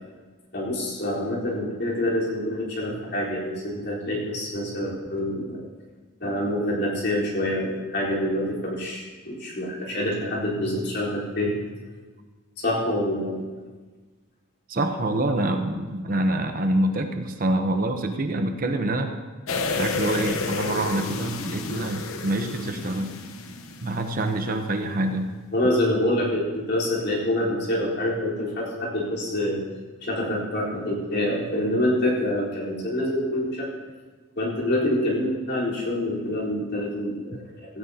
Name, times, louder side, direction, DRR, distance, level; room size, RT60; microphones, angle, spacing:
voice 1, 0.5-5.7 6.2-11.6 12.6-13.5 24.4-24.5 25.5-29.6 30.0-33.7 34.4-37.8, left 1 dB, 50° left, -5 dB, 4.0 m, -26 dB
voice 2, 14.7-19.1 19.8-23.2 23.8-25.3, right 1 dB, 40° right, 5 dB, 0.8 m, -26 dB
sound 1, 19.5-24.3 24.6-24.7, left 4 dB, 75° left, 1.0 m, -31 dB
16.5 x 16.0 x 2.8 m, 1.4 s
head